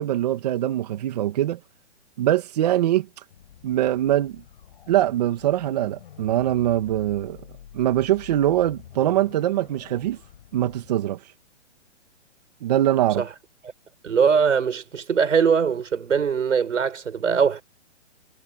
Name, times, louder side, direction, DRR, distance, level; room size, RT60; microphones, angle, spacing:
voice 1, 0.0-1.6 2.2-3.1 3.6-4.4 4.9-7.4 7.7-10.2 10.5-11.2 12.6-13.2, right 13 dB, 35° right, 2.2 m, -22 dB
sound 1, 3.3-10.9, left 11 dB, 45° left, 6.7 m, -47 dB
voice 2, 14.0-17.6, right 6 dB, 85° right, 7.0 m, -21 dB
hypercardioid pair, 170°, 37 cm